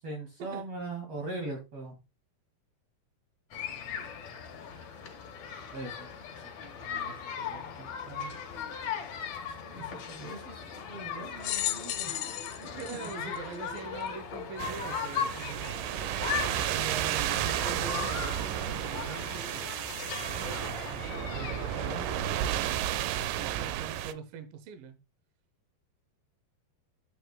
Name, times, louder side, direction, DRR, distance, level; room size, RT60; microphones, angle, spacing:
voice 1, 0.0-2.0 5.7-6.1 6.8-8.3 9.4-10.6 10.9-12.8 20.9-21.0 21.3-22.2, right 2 dB, 45° right, 2.8 m, -42 dB
sound 1, 3.5-22.3, left 7 dB, 55° left, 2.4 m, -38 dB
sound 2, 11.4-14.1 14.8-14.9 16.0-16.1, left 13 dB, 85° left, 3.0 m, -35 dB
voice 2, 12.6-15.9 16.7-19.7 22.2-22.3 23.3-25.0, right 6 dB, 70° right, 2.5 m, -42 dB
sound 3, 14.6-24.1, right 12 dB, 90° right, 1.9 m, -32 dB
9.5 x 8.4 x 2.3 m
omnidirectional pair, 4.3 m